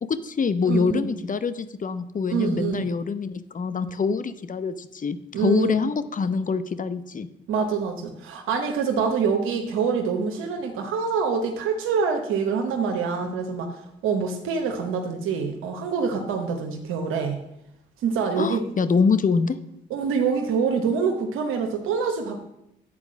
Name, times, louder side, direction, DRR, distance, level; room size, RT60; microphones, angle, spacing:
voice 1, 0.0-7.3 18.4-19.6, left 5 dB, 40° left, 13 dB, 0.8 m, -25 dB
voice 2, 0.6-1.1 2.3-2.8 5.3-5.7 7.5-13.8 14.0-17.4 18.0-18.6 19.9-22.4, right 5 dB, 90° right, 3 dB, 0.9 m, -25 dB
8.6 x 4.6 x 7.4 m, 0.81 s
supercardioid pair, 55°, 21 cm